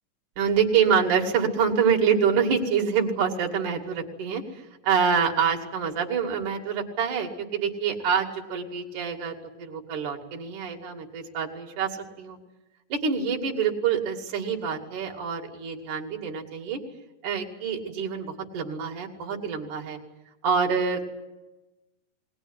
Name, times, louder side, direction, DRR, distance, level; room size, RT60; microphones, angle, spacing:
voice 1, 0.4-12.4 12.9-16.8 17.2-20.0 20.4-21.0, right 6 dB, 65° right, 1 dB, 3.7 m, -26 dB
20.5 x 20.5 x 9.9 m, 1.1 s
omnidirectional pair, 3.8 m